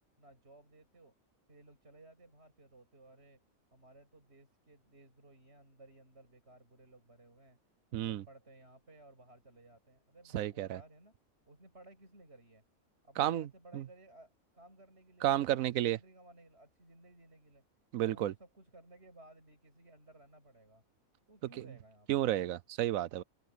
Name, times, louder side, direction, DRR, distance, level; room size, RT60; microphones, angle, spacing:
voice 1, 0.2-1.1 1.5-3.4 3.7-7.6 8.0-11.1 11.5-12.6 13.0-17.6 18.0-20.8 21.3-22.2, right 2 dB, 45° right, 7.6 m, -58 dB
voice 2, 7.9-8.2 10.3-10.8 13.2-13.8 15.2-16.0 17.9-18.3 22.1-23.2, right 13 dB, 75° right, 1.1 m, -32 dB
omnidirectional pair, 1.5 m